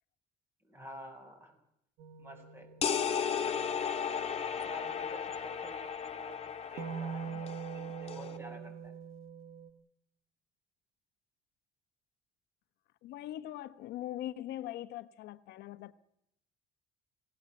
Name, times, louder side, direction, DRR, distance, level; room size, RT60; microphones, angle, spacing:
voice 1, 0.6-1.6 2.2-2.7 4.4-8.9, equal, 15° right, 7.4 m, -50 dB
sound 1, 2.0-4.3 6.8-9.7, right 7 dB, 85° right, 1.7 m, -44 dB
sound 2, 2.8-8.4, left 7 dB, 40° left, 2.2 m, -35 dB
voice 2, 7.1-7.6 13.0-15.9, left 13 dB, 80° left, 1.1 m, -42 dB
26.0 x 18.0 x 7.8 m
cardioid pair, 110°, 17 cm